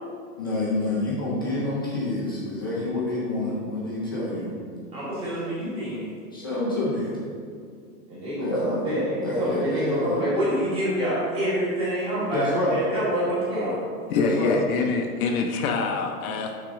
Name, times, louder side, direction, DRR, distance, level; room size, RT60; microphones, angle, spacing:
voice 1, 0.4-4.6 6.3-7.2 8.4-8.8 9.2-10.2 12.3-12.8 14.1-14.6, left 2 dB, 15° left, -8 dB, 0.4 m, -27 dB
voice 2, 4.9-6.1 8.1-13.8, equal, 10° right, -9 dB, 1.4 m, -27 dB
voice 3, 14.1-16.5, left 5 dB, 65° left, 2 dB, 0.7 m, -25 dB
6.2 x 3.7 x 4.9 m, 2.2 s
supercardioid pair, 175°, 47 cm